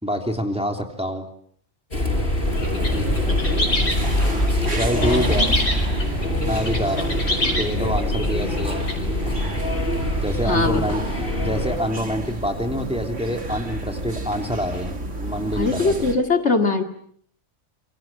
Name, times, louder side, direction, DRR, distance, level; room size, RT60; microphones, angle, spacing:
voice 1, 0.0-1.3 4.8-5.5 6.4-7.1 7.6-8.8 10.2-11.0 11.4-15.9, equal, 5° right, 4 dB, 3.3 m, -26 dB
sound 1, 1.9-11.8, left 1 dB, 50° left, 6.5 m, -24 dB
sound 2, 2.4-16.2, right 2 dB, 80° right, 3.1 m, -32 dB
sound 3, 2.5-8.9, left 1 dB, 80° left, 5.2 m, -27 dB
voice 2, 4.9-5.3 10.4-11.0 15.5-16.8, left 3 dB, 65° left, 5 dB, 2.6 m, -22 dB
27.0 x 24.5 x 7.5 m, 0.64 s
omnidirectional pair, 1.2 m